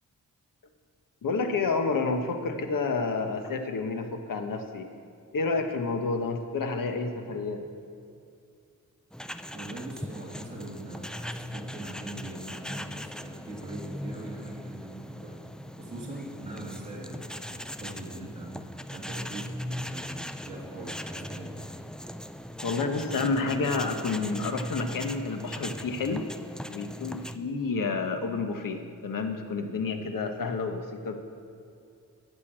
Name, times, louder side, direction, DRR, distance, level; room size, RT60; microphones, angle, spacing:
voice 1, 1.2-4.9 5.3-7.6 22.6-26.2 26.7-31.2, left 4 dB, 80° left, 6 dB, 1.2 m, -30 dB
sound 1, 9.1-27.4, equal, ahead, 0.4 m, -39 dB
voice 2, 9.5-15.4 15.8-18.6 18.9-21.6, right 2 dB, 20° right, -5 dB, 2.9 m, -42 dB
13.5 x 6.9 x 8.9 m, 2.5 s
wide cardioid pair, 110°, 33 cm